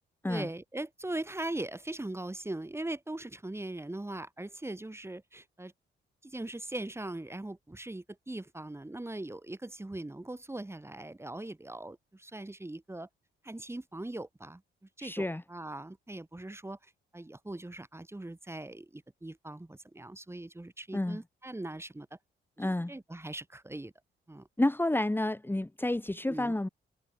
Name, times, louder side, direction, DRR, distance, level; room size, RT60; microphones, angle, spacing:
voice 1, 0.3-5.7 6.2-13.1 13.4-14.6 15.0-16.8 17.1-22.2 22.6-23.9 24.3-24.5 26.3-26.5, right 1 dB, 10° right, 4.4 m, -40 dB
voice 2, 15.0-15.4 20.9-21.2 22.6-22.9 24.6-26.7, left 1 dB, 10° left, 2.7 m, -30 dB
cardioid pair, 85°, 20 cm